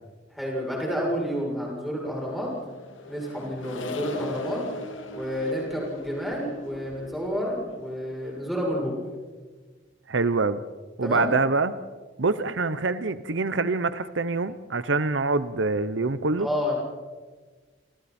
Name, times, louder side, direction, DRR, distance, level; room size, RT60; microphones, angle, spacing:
voice 1, 0.3-2.5 3.1-4.6 5.1-9.0 11.0-11.3 16.4-16.7, equal, ahead, -3 dB, 7.4 m, -29 dB
Accelerating revving vroom, 2.2-8.9, left 2 dB, 90° left, 2.1 m, -40 dB
voice 2, 10.1-10.6 11.0-11.7 12.2-16.5, right 3 dB, 75° right, 13 dB, 0.8 m, -25 dB
28.0 x 27.5 x 4.4 m, 1.4 s
head